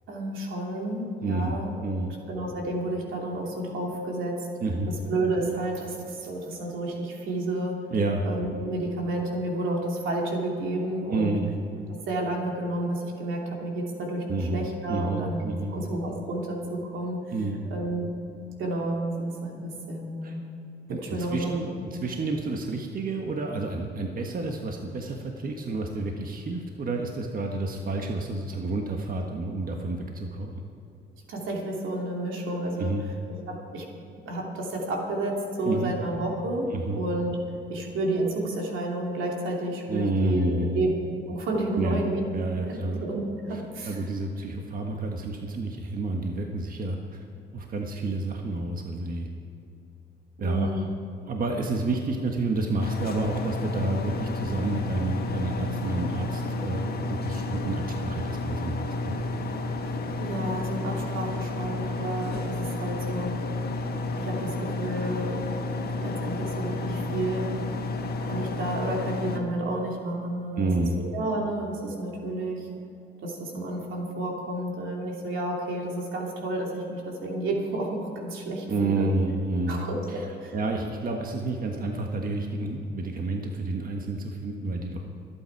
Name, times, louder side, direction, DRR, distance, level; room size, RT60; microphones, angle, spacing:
voice 1, 0.1-4.5 4.9-7.8 8.3-11.4 12.1-15.4 15.7-17.2 17.7-18.1 18.6-20.4 21.1-21.8 31.3-32.9 33.5-33.8 34.2-37.4 37.7-40.9 41.3-42.2 42.7-44.0 50.4-50.9 60.2-63.4 64.2-65.4 65.9-67.5 68.2-70.7 71.0-72.7 73.2-79.1 79.7-80.6, right 1 dB, 85° right, -1 dB, 2.9 m, -31 dB
voice 2, 1.2-2.2 4.6-4.9 7.9-8.2 11.1-11.5 14.3-15.7 17.3-17.6 20.2-20.3 20.9-30.6 32.8-33.0 35.6-35.9 36.7-37.0 39.9-40.8 41.8-42.1 42.3-43.0 43.5-47.2 47.5-49.3 50.4-50.9 51.3-59.2 70.6-71.0 78.7-80.2 80.5-85.0, right 2 dB, 45° right, 2 dB, 1.5 m, -30 dB
sound 1, 52.8-69.4, left 2 dB, 50° left, 1.7 m, -31 dB
26.5 x 8.9 x 4.7 m, 2.8 s
cardioid pair, 90°, 20 cm